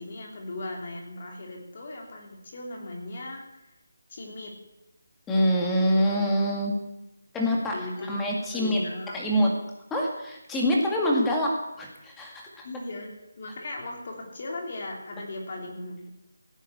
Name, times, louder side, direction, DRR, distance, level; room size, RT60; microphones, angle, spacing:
voice 1, 0.0-3.7 4.1-4.5 7.7-8.1 8.5-9.5 12.6-16.1, left 2 dB, 35° left, 0 dB, 3.5 m, -38 dB
voice 2, 5.3-6.8 7.3-7.8 8.1-8.8 9.1-9.5 9.9-12.7, equal, 5° left, -1 dB, 1.9 m, -25 dB
16.5 x 9.2 x 8.1 m, 0.95 s
figure-of-eight pair, 175°, 0 cm